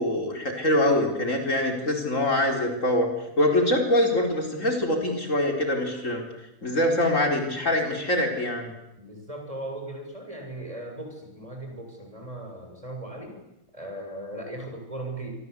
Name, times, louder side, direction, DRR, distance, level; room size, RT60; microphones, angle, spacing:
voice 1, 0.0-3.1 3.4-6.2 6.6-8.7, left 1 dB, 60° left, 3 dB, 4.6 m, -24 dB
voice 2, 9.0-13.4 13.7-15.3, right 1 dB, 25° right, 2 dB, 7.8 m, -38 dB
27.0 x 23.5 x 8.3 m, 0.89 s
omnidirectional pair, 1.5 m